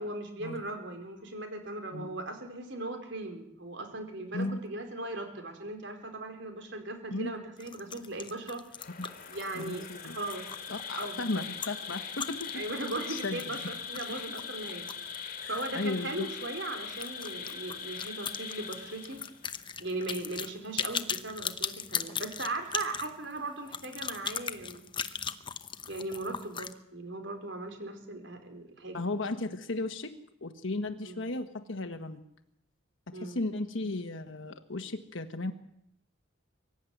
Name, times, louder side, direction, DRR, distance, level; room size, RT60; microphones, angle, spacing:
voice 1, 0.0-8.7 9.3-10.5 10.9-11.4 12.5-14.9 15.5-19.2 19.8-24.9 25.9-29.0 31.0-31.3 33.1-33.4, right 2 dB, 60° right, 6 dB, 4.2 m, -38 dB
sound 1, 7.6-15.8 16.0-16.1 16.4-16.5 16.9-26.7, left 7 dB, 25° left, 0.9 m, -38 dB
Insect, 8.7-19.5, left 7 dB, 45° left, 2.8 m, -41 dB
voice 2, 9.5-10.2 10.7-12.6 13.1-13.4 15.4-16.3 28.9-30.1 30.4-32.2 33.1-35.5, left 2 dB, 65° left, 6 dB, 1.3 m, -35 dB
23.5 x 13.0 x 9.3 m, 0.75 s
head